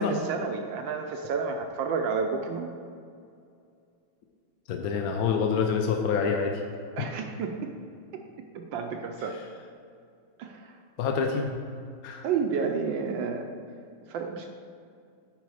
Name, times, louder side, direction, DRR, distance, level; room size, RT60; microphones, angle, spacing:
voice 1, 0.0-2.7 7.0-7.8 8.5-9.4 10.4-10.7 12.2-13.5 14.1-14.5, right 5 dB, 75° right, 4 dB, 1.2 m, -30 dB
voice 2, 4.7-6.6 7.0-7.1 11.0-11.5 12.0-12.2, left 6 dB, 75° left, 3 dB, 0.8 m, -26 dB
9.4 x 4.8 x 4.7 m, 2.4 s
omnidirectional pair, 2.2 m